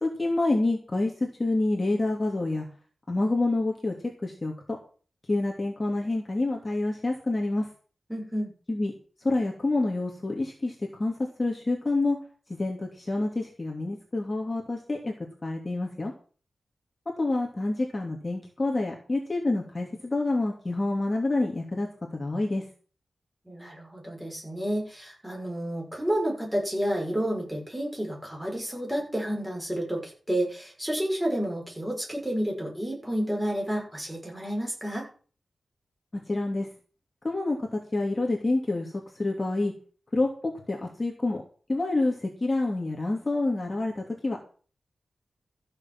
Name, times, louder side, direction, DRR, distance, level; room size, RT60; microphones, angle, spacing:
voice 1, 0.0-1.1 1.4-2.6 3.1-3.9 4.2-4.5 5.3-7.6 8.7-8.9 9.2-10.7 11.0-11.1 11.4-12.2 12.6-15.1 15.4-16.1 17.2-21.9 22.1-22.6 36.3-36.7 37.2-38.9 39.2-39.7 40.1-41.4 41.7-44.4, left 2 dB, 25° left, -1 dB, 2.7 m, -27 dB
voice 2, 8.1-8.5 23.5-35.1, equal, 5° right, -1 dB, 6.6 m, -30 dB
14.5 x 6.9 x 7.4 m, 0.40 s
wide cardioid pair, 120°, 0 cm